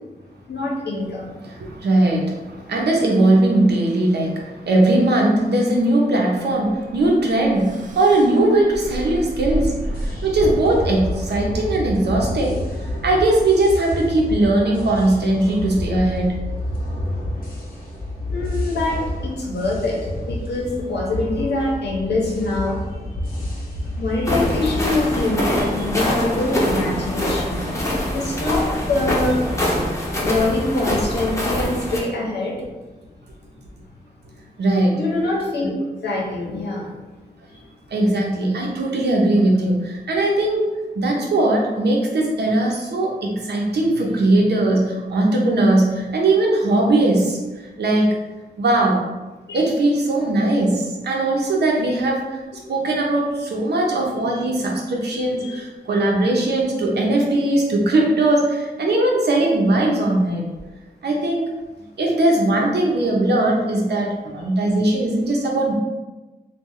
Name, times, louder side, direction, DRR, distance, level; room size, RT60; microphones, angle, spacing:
voice 1, 0.5-1.3 18.3-20.0 20.3-22.8 24.0-29.5 30.2-32.5 34.9-35.7 36.0-36.9 49.5-49.7 54.3-54.5 55.1-55.5, left 2 dB, 85° left, -2 dB, 0.8 m, -24 dB
voice 2, 1.4-16.3 34.6-35.0 37.9-47.4 47.8-48.1 48.6-49.0 49.5-52.4 52.7-60.5 61.0-61.5 62.0-65.7, right 2 dB, 85° right, -1 dB, 0.7 m, -19 dB
sound 1, 6.6-11.7, right 1 dB, 50° right, 0.4 m, -31 dB
sound 2, 9.8-24.9, left 1 dB, 55° left, 0.9 m, -29 dB
sound 3, 24.2-32.0, left 1 dB, 20° left, 0.7 m, -24 dB
3.1 x 2.3 x 3.7 m, 1.2 s
wide cardioid pair, 165°, 17 cm